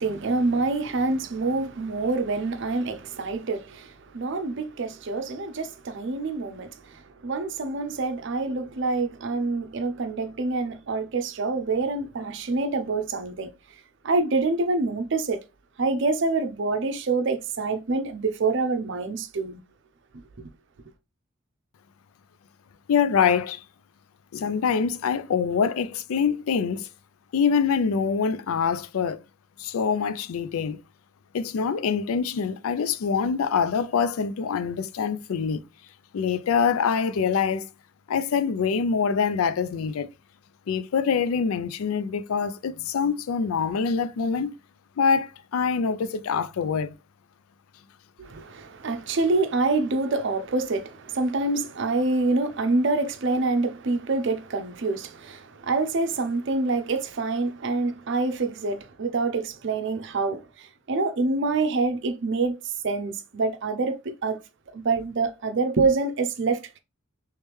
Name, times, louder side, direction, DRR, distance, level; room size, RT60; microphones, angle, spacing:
voice 1, 0.0-13.5 14.0-15.4 15.8-19.6 48.2-64.4 64.7-66.8, right 3 dB, 60° right, 0.5 m, -26 dB
voice 2, 22.9-23.6 24.3-26.9 27.3-29.2 29.6-30.8 31.3-35.6 36.1-37.7 38.1-40.1 40.7-44.5 45.0-46.9, left 6 dB, 80° left, 0.4 m, -25 dB
3.2 x 3.1 x 3.3 m
head